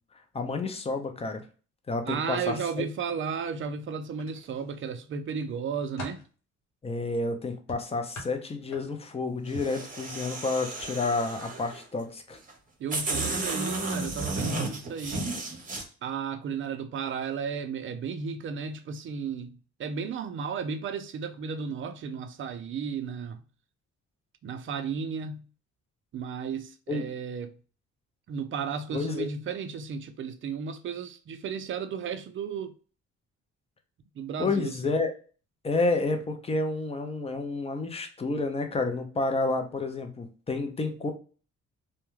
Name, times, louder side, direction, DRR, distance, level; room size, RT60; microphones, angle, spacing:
voice 1, 0.3-1.4 1.9-2.8 6.8-12.4 26.9-27.1 28.9-29.3 34.4-35.1 35.6-41.1, left 3 dB, 20° left, 0.5 m, -30 dB
voice 2, 2.1-6.2 12.8-15.3 16.0-23.4 24.4-25.5 26.1-27.5 28.3-32.7 34.2-34.9, right 6 dB, 45° right, 0.4 m, -34 dB
sound 1, 4.1-4.9 5.4-6.3 7.7-9.1 9.5-9.8 10.7-10.9 11.3-11.4, left 1 dB, 70° left, 0.9 m, -43 dB
sound 2, 9.5-11.8 12.5-12.6 12.9-15.8, right 2 dB, 25° right, 0.8 m, -33 dB
2.2 x 2.1 x 3.0 m
cardioid pair, 90°, 30 cm